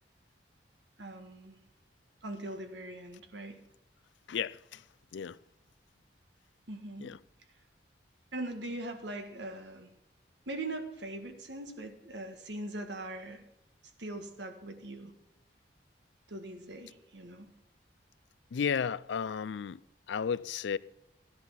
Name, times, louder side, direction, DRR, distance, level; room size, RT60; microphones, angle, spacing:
voice 1, 1.0-1.6 2.2-3.6 6.7-7.2 8.3-9.9 10.5-13.4 14.0-15.1 16.3-17.5, right 2 dB, 80° right, 1.6 m, -41 dB
voice 2, 4.3-4.8 5.1-5.4 7.0-7.2 18.5-19.8 20.1-20.8, left 7 dB, 80° left, 0.4 m, -33 dB
14.0 x 10.5 x 5.8 m
head